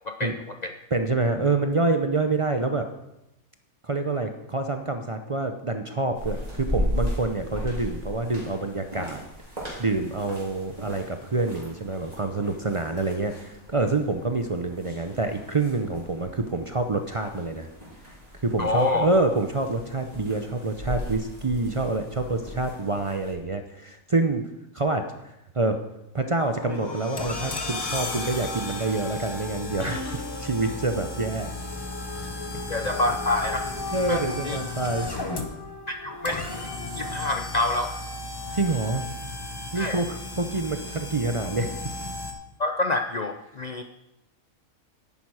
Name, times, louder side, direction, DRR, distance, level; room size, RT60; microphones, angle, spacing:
voice 1, 0.0-0.7 18.6-19.1 32.7-33.7 34.1-34.6 35.9-38.0 39.8-40.0 42.6-43.8, left 2 dB, 75° left, 5 dB, 0.3 m, -27 dB
voice 2, 0.9-2.9 3.8-9.2 9.8-17.7 18.4-24.4 24.7-25.1 25.5-25.8 26.1-31.5 33.9-35.1 38.5-39.1 39.7-41.7, right 3 dB, 45° right, 6 dB, 0.4 m, -27 dB
sound 1, 6.1-23.3, left 1 dB, 25° right, 3.4 m, -37 dB
sound 2, 26.4-42.3, left 2 dB, 20° left, 0.8 m, -35 dB
sound 3, 26.6-37.1, left 3 dB, 60° left, 1.9 m, -38 dB
10.5 x 9.1 x 4.8 m, 0.88 s
omnidirectional pair, 1.5 m